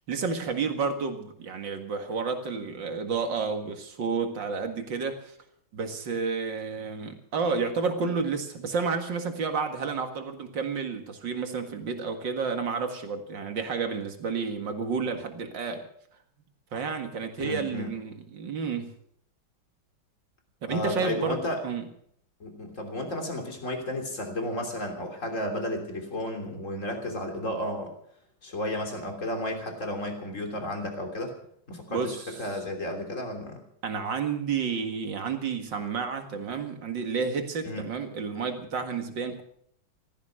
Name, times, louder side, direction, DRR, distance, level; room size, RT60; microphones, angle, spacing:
voice 1, 0.1-5.4 5.7-15.8 16.7-19.0 20.6-21.9 31.9-32.4 33.8-39.4, right 5 dB, 65° right, 6 dB, 2.5 m, -31 dB
voice 2, 17.4-17.9 20.7-21.6 22.4-27.9 28.4-31.3 31.7-33.6 37.6-37.8, left 1 dB, 35° left, 4 dB, 3.5 m, -33 dB
16.0 x 14.0 x 6.4 m, 0.67 s
omnidirectional pair, 2.2 m